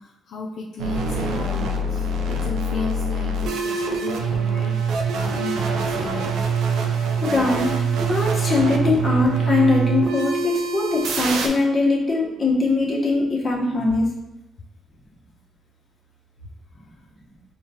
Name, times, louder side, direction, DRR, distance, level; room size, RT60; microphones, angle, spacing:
voice 1, 0.0-6.4, left 3 dB, 65° left, -1 dB, 0.4 m, -34 dB
sound 1, 0.8-11.5, right 3 dB, 85° right, 0.4 m, -24 dB
voice 2, 7.2-14.1, left 3 dB, 30° left, -3 dB, 1.0 m, -21 dB
4.6 x 2.3 x 2.8 m, 0.92 s
cardioid pair, 90°, 0 cm